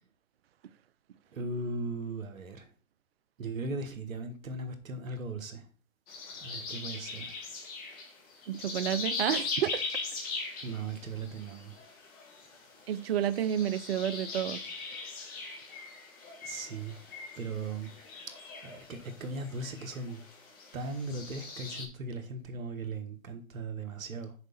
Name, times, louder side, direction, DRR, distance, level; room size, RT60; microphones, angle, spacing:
voice 1, 1.3-2.7 3.4-5.6 6.3-7.3 10.6-11.8 16.4-17.0 17.4-17.9 18.6-20.2 20.7-24.3, right 3 dB, 70° right, 1.4 m, -38 dB
sound 1, 6.1-21.9, left 3 dB, 20° left, 1.6 m, -40 dB
voice 2, 8.5-9.8 12.9-14.6, right 10 dB, 45° right, 0.5 m, -30 dB
6.5 x 4.6 x 5.6 m
hypercardioid pair, 140°, 42 cm